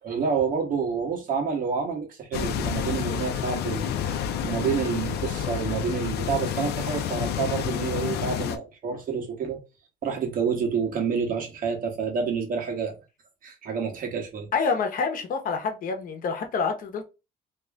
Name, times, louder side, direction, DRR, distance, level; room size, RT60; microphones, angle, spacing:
voice 1, 0.0-9.6 10.0-12.9 13.4-14.5, right 6 dB, 55° right, 1.3 m, -28 dB
sound 1, 2.3-8.6, left 9 dB, 75° left, 0.6 m, -29 dB
voice 2, 14.5-17.0, left 5 dB, 55° left, 1.0 m, -27 dB
3.0 x 2.6 x 3.4 m
cardioid pair, 110°, 17 cm